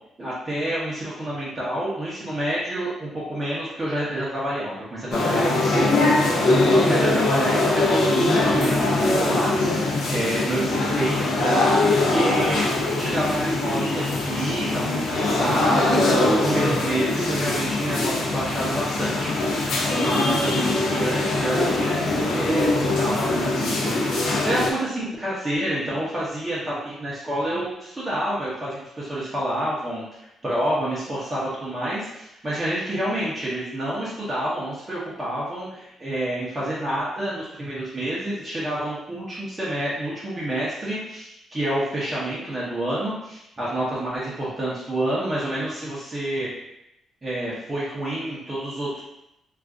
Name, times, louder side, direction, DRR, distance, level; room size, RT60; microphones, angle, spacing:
voice 1, 0.2-11.8 12.1-46.5 47.2-49.0, right 1 dB, 20° right, -8 dB, 0.6 m, -28 dB
sound 1, 5.1-24.7, left 2 dB, 70° left, 0.6 m, -22 dB
2.4 x 2.4 x 3.6 m, 0.85 s
cardioid pair, 145°, 0 cm